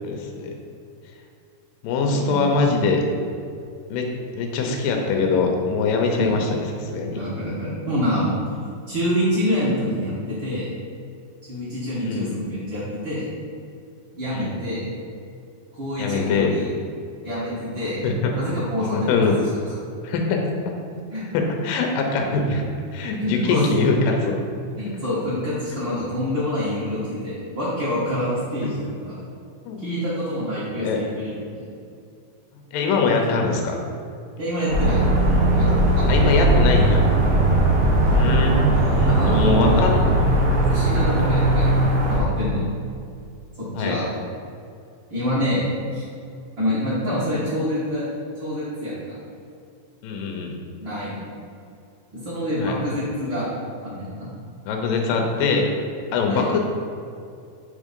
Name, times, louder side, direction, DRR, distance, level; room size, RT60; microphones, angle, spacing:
voice 1, 0.0-0.5 1.8-3.0 3.9-6.5 6.8-7.2 12.0-12.3 14.3-14.5 16.0-16.5 18.0-18.3 18.8-19.4 20.0-20.7 21.3-22.6 22.9-24.4 29.7-29.8 30.8-31.0 32.7-33.7 36.1-37.0 38.1-38.6 38.8-40.0 41.2-41.5 43.7-44.0 50.0-50.6 52.6-52.8 54.7-55.7 56.1-56.6, left 4 dB, 90° left, 2 dB, 2.4 m, -23 dB
voice 2, 2.0-2.9 6.2-6.4 7.1-8.3 8.9-10.7 11.5-13.3 14.1-14.8 15.7-16.7 17.2-18.0 18.4-19.3 20.9-21.2 23.2-23.7 24.8-29.2 29.8-31.6 34.4-35.0 35.5-35.7 35.9-36.9 39.1-39.8 40.7-42.6 43.6-44.0 45.1-45.6 45.9-46.1 46.6-48.0 48.4-49.0 50.8-51.2 52.1-53.5 53.8-54.3 56.3-56.5, equal, 45° right, -11 dB, 1.7 m, -26 dB
sound 1, 34.7-42.2, right 1 dB, 85° right, 3.1 m, -18 dB
7.0 x 3.6 x 5.2 m, 2.4 s
omnidirectional pair, 3.9 m